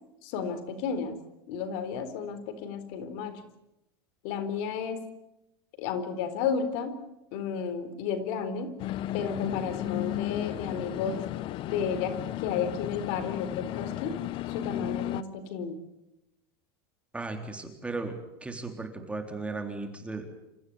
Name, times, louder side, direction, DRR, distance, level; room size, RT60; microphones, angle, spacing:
voice 1, 0.2-1.2 1.5-3.4 4.2-5.1 5.8-7.0 7.3-8.8 9.1-11.3 11.7-14.2 14.5-15.8, left 6 dB, 60° left, 11 dB, 4.0 m, -32 dB
sound 1, 8.8-15.2, left 14 dB, 45° left, 1.0 m, -34 dB
voice 2, 17.1-20.3, right 3 dB, 10° right, 5 dB, 3.8 m, -36 dB
28.5 x 15.5 x 9.7 m, 0.91 s
supercardioid pair, 130°, 13 cm